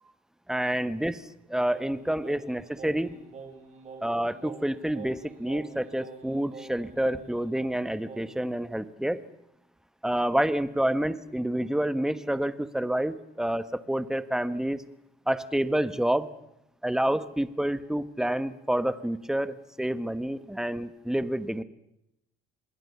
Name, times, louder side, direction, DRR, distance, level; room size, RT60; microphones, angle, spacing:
voice 1, 0.5-3.2 4.0-9.2 10.0-14.8 15.3-16.3 16.8-21.6, right 1 dB, 5° right, 13 dB, 1.3 m, -28 dB
Singing, 1.7-8.5, right 4 dB, 40° right, 6.0 m, -46 dB
26.5 x 20.5 x 7.0 m, 0.83 s
cardioid pair, 110°, 17 cm